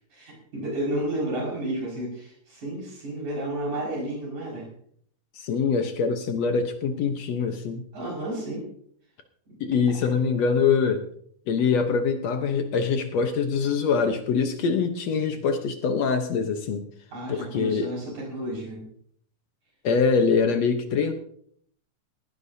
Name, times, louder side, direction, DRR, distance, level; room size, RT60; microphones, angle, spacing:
voice 1, 0.1-4.7 7.9-8.6 9.5-9.6 10.0-10.1 17.1-18.9, right 1 dB, 65° right, -2 dB, 7.2 m, -32 dB
voice 2, 5.4-7.8 9.6-11.0 11.5-16.9 17.3-17.9 19.8-21.1, left 5 dB, 65° left, 6 dB, 2.0 m, -24 dB
19.0 x 16.0 x 2.8 m, 0.62 s
omnidirectional pair, 3.7 m